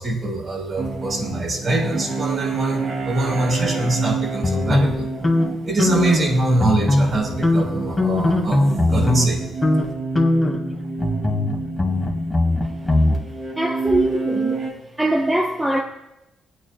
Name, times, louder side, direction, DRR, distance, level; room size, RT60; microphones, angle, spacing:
voice 1, 0.0-5.1 5.6-8.6 8.9-9.4, right 2 dB, 45° right, -2 dB, 4.6 m, -24 dB
sound 1, 0.8-14.7, right 4 dB, 60° right, 2.6 m, -29 dB
sound 2, 4.4-6.3 6.6-7.2 7.4-9.3 9.6-9.9 10.1-13.2, left 2 dB, 15° left, 2.2 m, -20 dB
voice 2, 13.6-14.7 15.0-15.8, right 1 dB, 10° right, -1 dB, 1.1 m, -22 dB
21.0 x 9.5 x 2.4 m, 0.94 s
cardioid pair, 90°, 0 cm